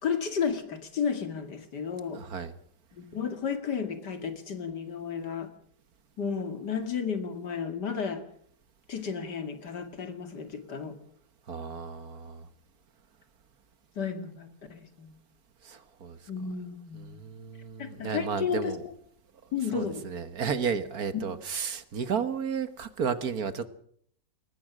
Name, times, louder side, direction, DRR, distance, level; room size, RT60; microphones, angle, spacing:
voice 1, 0.0-2.2 2.9-5.5 6.2-8.2 8.9-11.0 14.0-15.2 16.3-17.2 17.8-18.7 19.5-20.0, left 6 dB, 65° left, 8 dB, 2.7 m, -33 dB
voice 2, 2.1-2.5 11.5-12.5 15.6-16.3 16.9-18.8 19.7-23.7, right 6 dB, 55° right, 12 dB, 1.7 m, -33 dB
21.5 x 19.5 x 6.2 m, 0.63 s
omnidirectional pair, 1.9 m